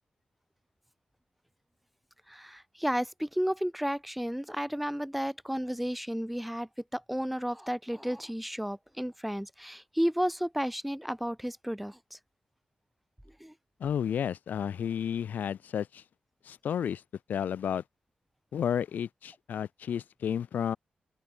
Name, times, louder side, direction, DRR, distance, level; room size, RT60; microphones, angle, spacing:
voice 1, 2.3-12.2 13.4-13.5, equal, ahead, 4.0 m, -32 dB
voice 2, 13.8-16.0 16.5-17.0 17.3-17.8 18.5-20.8, left 8 dB, 80° left, 3.7 m, -32 dB
open air
wide cardioid pair, 120°, 3 cm